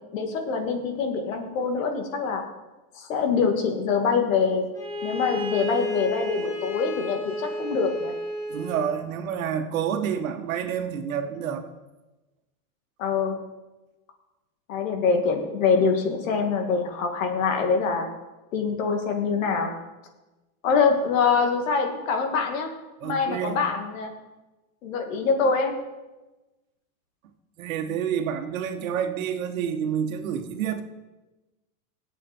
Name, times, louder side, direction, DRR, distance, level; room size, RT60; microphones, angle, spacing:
voice 1, 0.1-2.4 2.9-4.6 5.0-8.1 13.0-13.4 14.7-18.1 18.5-19.7 20.6-22.7 23.0-24.1 24.8-25.8, left 5 dB, 65° left, 4 dB, 2.7 m, -24 dB
Bowed string instrument, 4.7-9.0, left 1 dB, 5° left, 1.6 m, -31 dB
voice 2, 8.5-11.7 23.0-23.6 27.6-30.8, right 8 dB, 70° right, 6 dB, 1.8 m, -28 dB
24.0 x 8.3 x 4.5 m, 1.1 s
supercardioid pair, 175°, 42 cm